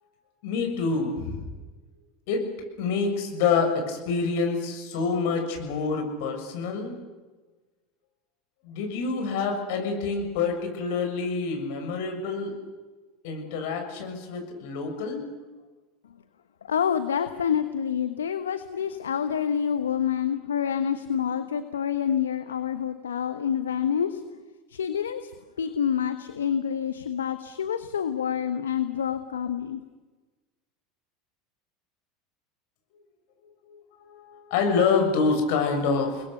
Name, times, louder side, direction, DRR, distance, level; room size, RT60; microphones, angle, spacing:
voice 1, 0.4-1.5 2.3-2.4 2.8-7.0 8.6-12.5 13.2-15.2 33.7-36.2, left 4 dB, 65° left, 4 dB, 6.8 m, -27 dB
voice 2, 16.7-24.2 24.7-25.3 25.6-29.8, left 8 dB, 85° left, 10 dB, 1.1 m, -27 dB
30.0 x 21.0 x 6.8 m, 1.3 s
hypercardioid pair, 80°, 0 cm